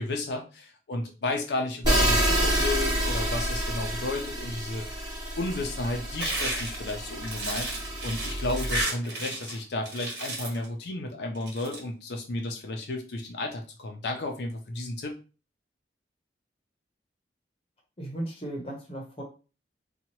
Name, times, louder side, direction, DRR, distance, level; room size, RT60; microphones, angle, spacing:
voice 1, 0.0-5.1 5.4-7.7 8.0-15.1, left 2 dB, 75° left, 2 dB, 0.5 m, -33 dB
sound 1, 1.8-8.8, right 1 dB, 25° right, 1.3 m, -28 dB
sound 2, 6.2-9.6 9.9-10.6 11.3-11.8, right 1 dB, 70° right, 1.5 m, -32 dB
voice 2, 18.0-19.2, right 1 dB, 30° left, 0 dB, 0.8 m, -36 dB
2.8 x 2.3 x 3.0 m, 0.33 s
head